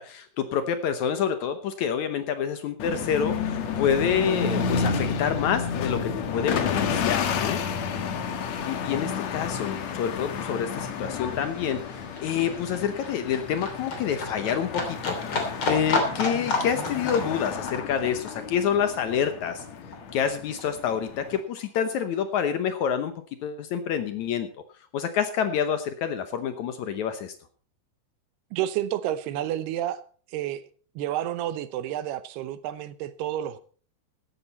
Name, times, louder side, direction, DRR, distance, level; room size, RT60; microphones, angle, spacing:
voice 1, 0.0-6.0 6.3-7.6 8.6-19.6 20.1-23.1 23.4-24.5 24.9-27.3, left 8 dB, 80° left, 1.6 m, -27 dB
sound 1, 2.8-21.4, left 6 dB, 60° left, 1.9 m, -31 dB
sound 2, 8.0-18.6, equal, 5° left, 6.1 m, -48 dB
Livestock farm animals working animals, 9.5-20.3 20.6-21.6 21.9-22.0, left 2 dB, 35° left, 3.3 m, -32 dB
voice 2, 28.5-30.0 30.3-30.6 31.0-33.6, right 12 dB, 80° right, 2.8 m, -30 dB
15.5 x 12.0 x 4.2 m
omnidirectional pair, 4.8 m